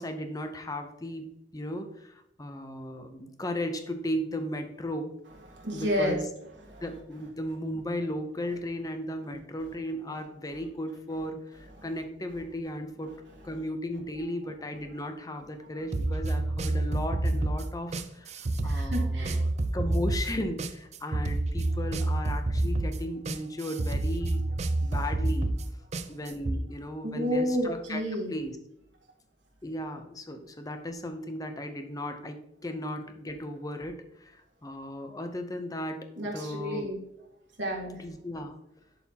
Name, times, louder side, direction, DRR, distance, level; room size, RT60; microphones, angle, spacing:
voice 1, 0.0-5.1 5.7-6.2 6.8-13.1 13.4-24.4 24.8-25.5 26.1-28.0 28.3-28.5 29.6-36.9 38.0-38.6, left 1 dB, 20° left, 6 dB, 0.6 m, -36 dB
voice 2, 5.5-6.2 6.7-6.8 11.8-11.9 13.5-13.6 15.4-15.5 18.6-19.4 24.5-25.0 27.0-28.3 36.2-37.0 37.6-38.0, equal, 75° right, -1 dB, 1.7 m, -31 dB
sound 1, 15.9-26.6, right 2 dB, 35° right, 0.4 m, -28 dB
11.0 x 4.1 x 2.8 m, 0.79 s
head